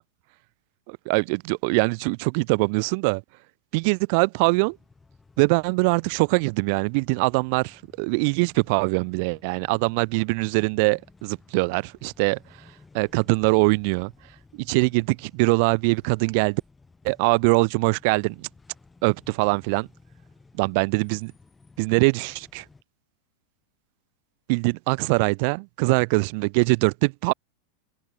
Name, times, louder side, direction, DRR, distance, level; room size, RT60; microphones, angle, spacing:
voice 1, 0.9-3.2 3.7-4.8 5.4-12.4 12.9-14.1 14.5-16.6 17.0-18.5 19.0-19.9 20.6-21.3 21.8-22.6 24.5-27.3, right 32 dB, 45° right, 0.3 m, -23 dB
sound 1, 4.4-22.8, left 3 dB, 10° left, 4.9 m, -55 dB
figure-of-eight pair, 90°, 0 cm